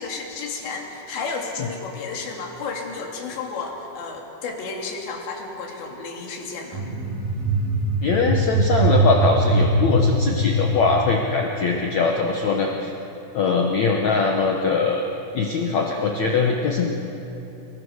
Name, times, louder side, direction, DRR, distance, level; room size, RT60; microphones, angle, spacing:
voice 1, 0.0-6.8, left 4 dB, 70° left, 0 dB, 4.7 m, -32 dB
sound 1, 6.7-11.8, right 1 dB, 50° right, 6.2 m, -22 dB
voice 2, 8.0-12.9 13.3-15.0 15.3-16.9, left 4 dB, 85° left, 1 dB, 1.5 m, -21 dB
29.0 x 21.0 x 6.6 m, 3.0 s
omnidirectional pair, 5.4 m